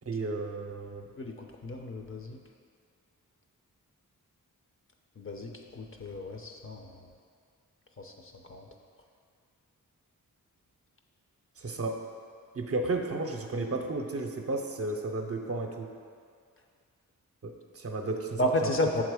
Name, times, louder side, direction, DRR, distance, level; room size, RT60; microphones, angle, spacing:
voice 1, 0.1-1.1 11.6-12.0 12.5-15.9 17.4-18.7, right 2 dB, 45° right, 3 dB, 0.6 m, -33 dB
voice 2, 1.2-2.4 5.2-7.1 8.0-8.7 18.4-19.0, left 1 dB, 40° left, 3 dB, 0.6 m, -33 dB
6.7 x 3.8 x 4.8 m, 2.2 s
cardioid pair, 75°, 34 cm